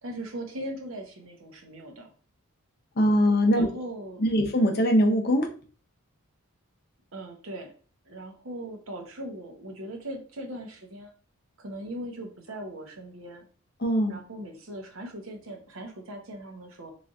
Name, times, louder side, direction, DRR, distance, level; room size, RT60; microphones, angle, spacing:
voice 1, 0.0-2.1 3.5-4.2 7.1-7.7 8.0-11.1 11.6-13.4 14.1-16.9, right 1 dB, 65° right, 3 dB, 0.8 m, -39 dB
voice 2, 3.0-3.7 4.2-5.5 13.8-14.2, equal, 45° left, 4 dB, 0.6 m, -22 dB
3.9 x 3.3 x 2.4 m, 0.40 s
head